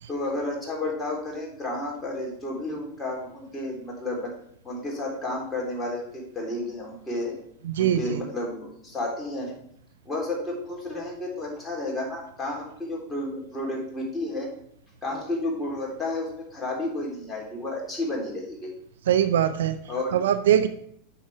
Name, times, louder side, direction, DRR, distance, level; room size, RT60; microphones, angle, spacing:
voice 1, 0.1-4.3 4.6-7.4 7.8-9.6 10.1-14.5 15.0-18.7 19.9-20.2, left 2 dB, 15° left, -2 dB, 3.7 m, -31 dB
voice 2, 7.6-8.2 19.1-19.8 20.1-20.7, right 10 dB, 70° right, 11 dB, 0.5 m, -22 dB
8.9 x 6.5 x 3.5 m, 0.70 s
hypercardioid pair, 90°, 0 cm